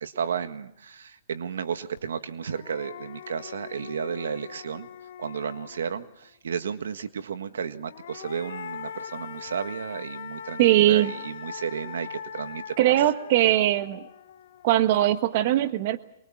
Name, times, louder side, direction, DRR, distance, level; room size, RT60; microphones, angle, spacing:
voice 1, 0.0-4.9 5.2-12.9, right 7 dB, 90° right, 10 dB, 1.6 m, -33 dB
sound 1, 2.0-2.1 2.4-6.1 7.7-15.0, left 8 dB, 70° left, 1.9 m, -41 dB
voice 2, 10.6-11.1 12.8-14.0 14.6-16.0, right 14 dB, 50° right, 10 dB, 1.4 m, -20 dB
23.5 x 22.0 x 7.3 m, 0.77 s
hypercardioid pair, 150°, 0 cm